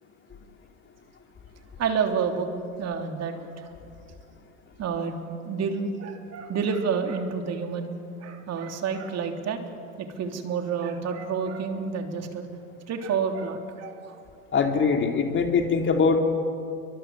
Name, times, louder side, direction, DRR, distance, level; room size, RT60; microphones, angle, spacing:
voice 1, 1.8-2.5 2.8-3.7 4.8-9.6 10.0-12.5 12.9-14.1, right 6 dB, 35° right, 4 dB, 3.4 m, -29 dB
voice 2, 14.5-16.2, left 5 dB, 25° left, 4 dB, 3.0 m, -22 dB
30.0 x 24.0 x 7.5 m, 2.5 s
hypercardioid pair, 95°, 44 cm